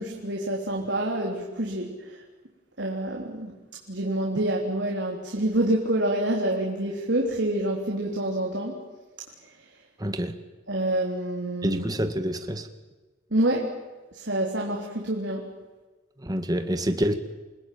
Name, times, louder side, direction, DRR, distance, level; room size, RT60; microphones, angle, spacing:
voice 1, 0.0-2.2 2.8-3.5 3.9-8.8 10.7-11.8 13.3-13.7 14.1-15.5, right 1 dB, 70° right, 3.5 m, -27 dB
voice 2, 10.0-10.3 11.6-12.7 16.2-17.1, equal, 20° right, 1.8 m, -27 dB
28.0 x 20.0 x 9.3 m
head